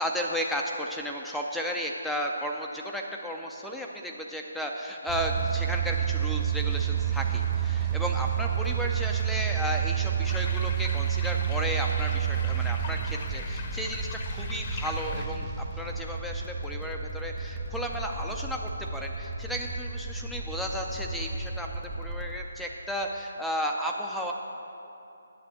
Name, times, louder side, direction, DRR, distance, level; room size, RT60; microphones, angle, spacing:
voice 1, 0.0-15.5 15.8-24.3, equal, ahead, 0 dB, 0.5 m, -34 dB
sound 1, 5.1-22.3, right 8 dB, 25° right, 1.1 m, -30 dB
sound 2, 10.2-15.3, left 5 dB, 40° left, 0.9 m, -42 dB
8.5 x 7.3 x 7.7 m, 2.8 s
figure-of-eight pair, 150°, 0 cm